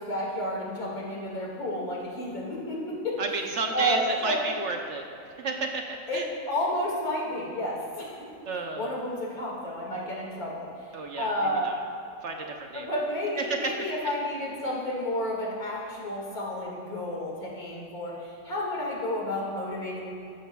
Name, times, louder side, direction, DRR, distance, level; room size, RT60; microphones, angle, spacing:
voice 1, 0.0-3.2 3.7-4.5 6.1-8.2 8.8-10.7 11.2-11.7 12.7-20.1, left 1 dB, 75° left, -4 dB, 2.6 m, -31 dB
voice 2, 3.2-5.0 5.4-6.3 8.5-8.9 10.9-11.8 12.2-12.9 14.0-14.1, right 3 dB, 60° right, 3 dB, 1.0 m, -32 dB
14.0 x 11.5 x 2.3 m, 2.7 s
omnidirectional pair, 1.6 m